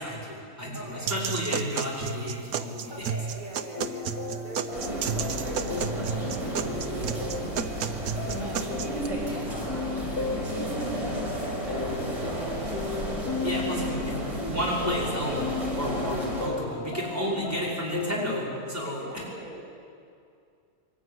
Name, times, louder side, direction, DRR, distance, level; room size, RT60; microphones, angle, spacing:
voice 1, 0.0-2.9 13.4-14.1 14.4-19.2, equal, 10° right, -6 dB, 5.7 m, -32 dB
voice 2, 0.7-1.2 1.5-1.6 2.9-8.1 8.4-8.8 9.3-10.5 10.8-13.5 14.1-14.5 18.8-19.6, right 1 dB, 30° right, -5 dB, 7.2 m, -44 dB
sound 1, 1.1-9.1, right 7 dB, 70° right, 1.4 m, -32 dB
sound 2, 3.8-18.3, left 4 dB, 85° left, 2.0 m, -36 dB
sound 3, 4.7-16.5, right 1 dB, 50° right, 4.6 m, -32 dB
23.0 x 15.5 x 9.7 m, 2.4 s
omnidirectional pair, 1.6 m